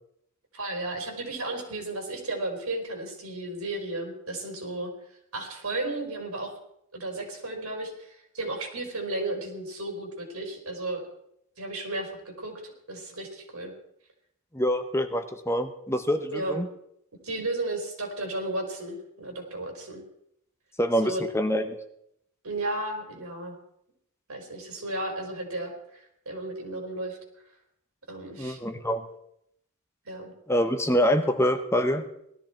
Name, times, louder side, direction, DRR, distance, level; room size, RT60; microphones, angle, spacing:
voice 1, 0.5-4.9 5.3-6.5 6.9-11.0 11.6-13.7 16.3-16.6 17.2-20.0 21.0-21.3 22.4-23.6 24.3-27.2 28.1-28.6 30.0-30.3, right 2 dB, 85° right, 2 dB, 4.4 m, -34 dB
voice 2, 14.5-16.7 20.8-21.8 28.4-29.0 30.5-32.1, equal, 10° left, 7 dB, 1.0 m, -25 dB
19.0 x 13.5 x 4.5 m, 0.74 s
head